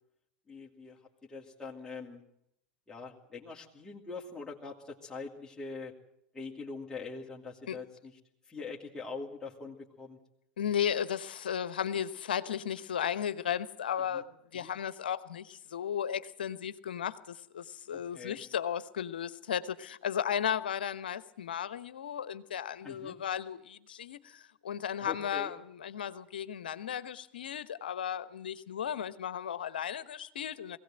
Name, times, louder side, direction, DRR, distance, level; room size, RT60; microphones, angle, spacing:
voice 1, 0.5-2.2 2.9-5.9 6.3-8.2 8.4-10.2 14.1-14.2 14.6-14.7 17.9-18.4 22.8-23.2 25.0-25.5, left 4 dB, 10° left, -4 dB, 2.6 m, -43 dB
voice 2, 10.6-14.2 14.5-25.6 25.8-30.8, left 9 dB, 80° left, 15 dB, 1.0 m, -35 dB
21.5 x 17.0 x 8.9 m, 0.77 s
hypercardioid pair, 90°, 5 cm